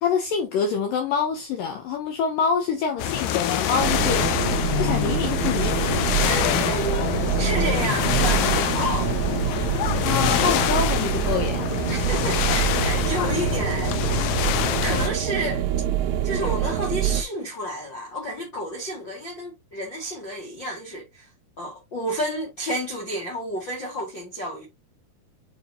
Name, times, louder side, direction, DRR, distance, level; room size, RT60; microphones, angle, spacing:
voice 1, 0.0-4.3 4.8-5.9 10.0-11.7, left 6 dB, 70° left, 2.2 m, -26 dB
sound 1, 3.0-15.1, left 10 dB, 90° left, 2.9 m, -25 dB
sound 2, 3.8-17.2, right 11 dB, 80° right, 1.7 m, -26 dB
voice 2, 6.2-7.1 7.4-9.1 11.9-14.5 14.8-15.7 16.2-21.3 21.6-24.7, equal, 40° left, 2.0 m, -31 dB
6.6 x 5.1 x 2.8 m
omnidirectional pair, 4.6 m